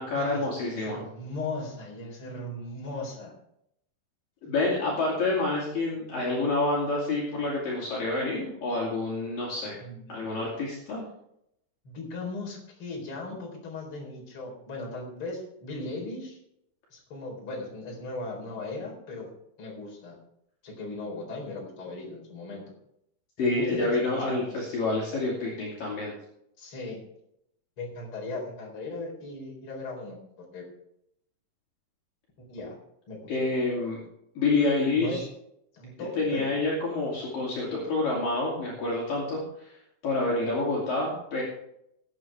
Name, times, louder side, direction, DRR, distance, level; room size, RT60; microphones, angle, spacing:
voice 1, 0.0-1.0 4.4-9.8 10.1-11.0 23.4-26.1 33.3-34.0 34.4-35.2 36.2-39.7 40.0-41.4, left 2 dB, 55° left, -5 dB, 4.2 m, -28 dB
voice 2, 0.7-3.3 9.8-10.1 11.8-16.4 16.9-19.3 19.6-20.2 20.6-22.6 23.4-24.4 26.6-27.0 27.8-30.7 32.4-32.8 33.1-33.3 34.9-35.3 35.7-36.5, left 2 dB, 30° left, -1 dB, 4.6 m, -37 dB
19.5 x 9.2 x 3.5 m, 0.76 s
omnidirectional pair, 5.0 m